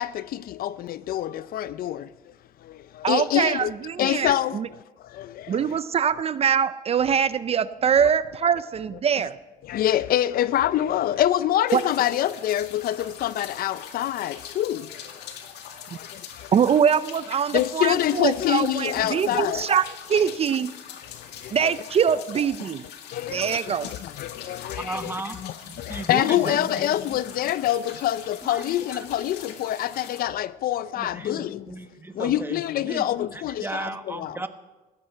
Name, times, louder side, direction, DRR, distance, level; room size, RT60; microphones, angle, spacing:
voice 1, 0.0-2.0 3.1-3.7 4.0-4.6 5.2-5.3 8.0-8.1 9.7-14.8 17.5-19.7 21.6-21.7 22.1-22.2 23.1-23.6 24.2-25.1 25.4-31.6 32.2-34.4, left 12 dB, 60° left, 0.5 m, -25 dB
voice 2, 3.0-4.7 5.5-9.4 11.7-11.8 16.5-20.7 21.5-22.8 23.3-23.9, right 7 dB, 35° right, 0.5 m, -23 dB
sound 1, 11.7-30.2, left 8 dB, 85° left, 2.1 m, -42 dB
voice 3, 24.8-27.2 28.5-28.6 28.9-29.0 31.0-33.1 33.3-34.5, right 2 dB, 15° right, 1.2 m, -35 dB
17.0 x 14.0 x 5.6 m
cardioid pair, 110°, 17 cm